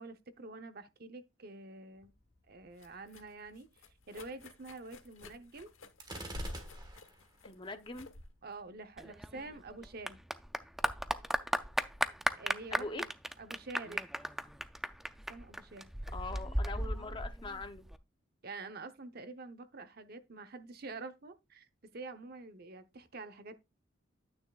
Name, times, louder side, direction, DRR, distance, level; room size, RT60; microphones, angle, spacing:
voice 1, 0.0-2.1 2.5-3.7 4.1-5.7 8.4-10.2 12.4-13.1 13.4-14.1 15.3-15.9 18.4-21.7 21.9-23.6, right 3 dB, 50° right, 0.8 m, -47 dB
sound 1, 2.0-9.8, left 1 dB, 80° left, 1.0 m, -50 dB
Gunshot gunfire, 6.0-7.2, right 2 dB, 20° right, 1.4 m, -45 dB
voice 2, 7.4-8.1 12.7-13.0 16.1-17.9, left 2 dB, 25° left, 0.7 m, -42 dB
Clapping / Applause, 9.0-18.0, equal, ahead, 0.3 m, -36 dB
9.5 x 9.0 x 2.3 m
head